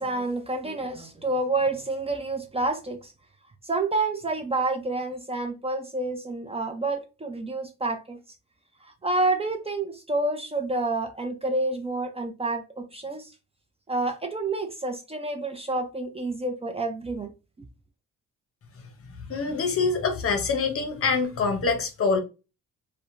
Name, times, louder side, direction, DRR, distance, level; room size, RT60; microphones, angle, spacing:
voice 1, 0.0-3.1 3.6-8.2 8.8-13.3 13.9-17.3, right 2 dB, 20° right, 0.5 m, -28 dB
voice 2, 19.3-22.2, left 4 dB, 50° left, 0.8 m, -25 dB
2.7 x 2.1 x 2.5 m
cardioid pair, 90°, 30 cm